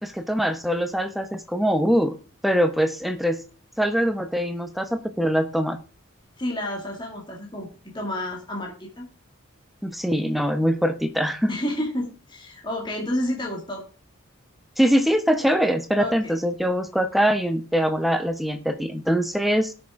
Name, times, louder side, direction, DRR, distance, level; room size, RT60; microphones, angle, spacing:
voice 1, 0.0-2.1 2.4-3.4 3.8-5.8 9.8-11.5 14.8-19.7, equal, ahead, 8 dB, 0.8 m, -23 dB
voice 2, 6.4-7.7 7.9-9.1 11.5-13.8 16.0-16.3, left 1 dB, 20° left, -1 dB, 2.1 m, -30 dB
18.0 x 6.4 x 3.6 m, 0.36 s
head